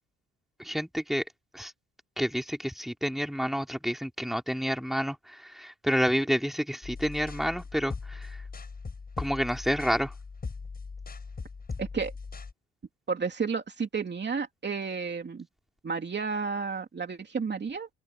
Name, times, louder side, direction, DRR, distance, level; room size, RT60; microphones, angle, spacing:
voice 1, 0.6-1.2 1.5-1.7 2.2-8.4 9.2-10.1, equal, ahead, 2.9 m, -29 dB
sound 1, 6.8-12.5, left 4 dB, 30° left, 5.7 m, -40 dB
voice 2, 11.8-12.1 13.1-15.5 15.8-17.9, right 5 dB, 35° right, 2.9 m, -32 dB
open air
cardioid pair, 90°, 30 cm